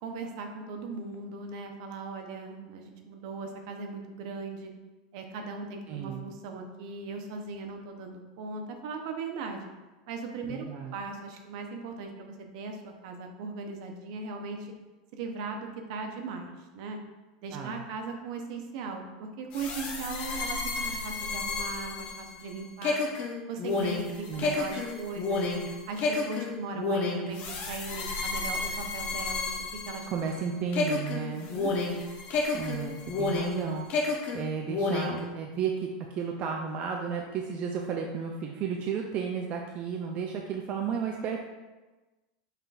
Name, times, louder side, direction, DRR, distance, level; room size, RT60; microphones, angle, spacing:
voice 1, 0.0-4.7 5.1-9.7 10.1-14.7 15.1-17.0 17.4-23.0 23.5-25.4 25.9-29.6 29.9-30.1 31.5-31.7, right 4 dB, 60° right, 4 dB, 0.7 m, -38 dB
voice 2, 5.9-6.3 10.5-10.9 17.5-17.8 24.3-24.6 30.1-31.5 32.5-41.4, right 6 dB, 35° right, 1 dB, 0.4 m, -33 dB
sound 1, 19.5-30.4 30.7-33.6 33.9-35.2, left 3 dB, 45° left, 0.9 m, -31 dB
5.6 x 3.7 x 2.4 m, 1.2 s
supercardioid pair, 135°, 4 cm